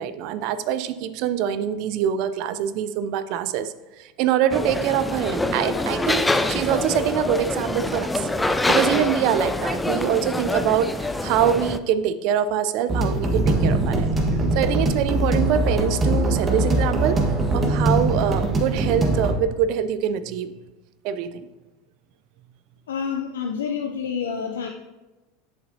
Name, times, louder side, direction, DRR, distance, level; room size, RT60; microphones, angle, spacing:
voice 1, 0.0-8.3 8.7-14.1 14.5-17.2 17.5-20.5 21.0-21.4, right 9 dB, 60° right, 13 dB, 0.4 m, -24 dB
sound 1, 4.5-11.8, left 2 dB, 10° left, 0.4 m, -25 dB
sound 2, 12.9-19.3, right 1 dB, 25° right, 1.5 m, -22 dB
voice 2, 22.9-24.7, left 6 dB, 80° left, 3 dB, 0.5 m, -28 dB
8.1 x 6.8 x 2.8 m, 1.1 s
hypercardioid pair, 85°, 0 cm